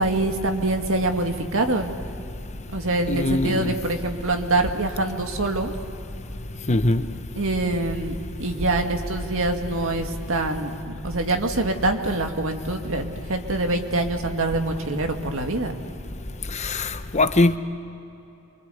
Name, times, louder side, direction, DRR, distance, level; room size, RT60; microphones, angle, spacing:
voice 1, 0.0-1.9 2.7-5.7 7.4-15.7, right 2 dB, 65° right, 4 dB, 2.2 m, -25 dB
voice 2, 3.1-3.7 6.7-7.0 16.5-17.6, left 2 dB, 30° left, 10 dB, 0.9 m, -21 dB
28.0 x 24.0 x 8.2 m, 2.8 s
head